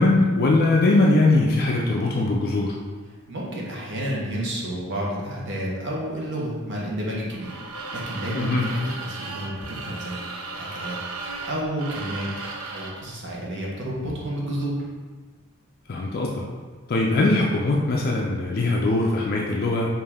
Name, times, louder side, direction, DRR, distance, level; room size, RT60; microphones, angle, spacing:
voice 1, 0.0-2.7 8.3-8.7 15.9-16.4 16.9-19.9, left 2 dB, 45° left, -2 dB, 0.4 m, -21 dB
voice 2, 3.3-10.3 10.5-11.0 11.3-14.9, equal, 55° right, -3 dB, 1.0 m, -31 dB
sound 1, 7.3-13.1, right 3 dB, 70° right, 0.5 m, -35 dB
5.3 x 2.6 x 3.5 m, 1.4 s
head